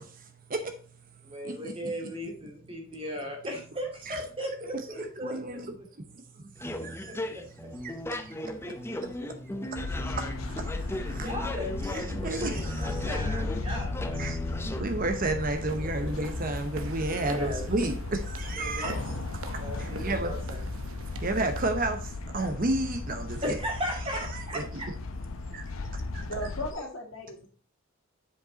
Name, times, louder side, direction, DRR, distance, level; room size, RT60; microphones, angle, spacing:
voice 1, 0.0-1.7 4.1-4.2 5.2-5.7 6.0-7.3 7.8-8.7 9.6-11.3 11.8-13.2 14.2-18.9 19.5-20.4 21.0-23.4 24.1-24.6 25.5-26.3, right 2 dB, 40° right, 0.8 m, -33 dB
voice 2, 1.2-5.9 6.8-6.9 7.3-7.4 11.2-14.4 15.8-16.1 17.2-17.6 18.7-19.2 19.6-20.6 23.4-24.9, equal, 25° right, 2.4 m, -37 dB
sound 1, 6.6-14.8, left 1 dB, 10° left, 0.7 m, -36 dB
sound 2, 9.7-26.7, left 3 dB, 80° left, 0.8 m, -35 dB
sound 3, 15.4-21.9, right 4 dB, 80° right, 0.8 m, -45 dB
voice 3, 26.3-27.5, left 1 dB, 65° left, 2.1 m, -36 dB
7.5 x 5.3 x 4.0 m
head